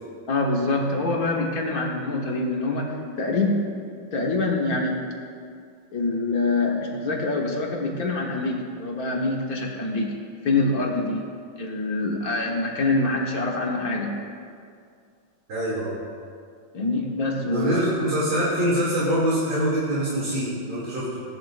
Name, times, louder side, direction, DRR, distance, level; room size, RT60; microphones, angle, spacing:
voice 1, 0.3-3.6 4.1-5.0 5.9-10.1 10.4-11.2 11.6-14.1 16.7-17.8, left 2 dB, 50° left, -1 dB, 1.7 m, -25 dB
voice 2, 15.5-16.0 17.4-21.2, right 1 dB, 80° right, -10 dB, 3.4 m, -24 dB
17.0 x 11.5 x 2.5 m, 2.2 s
omnidirectional pair, 2.2 m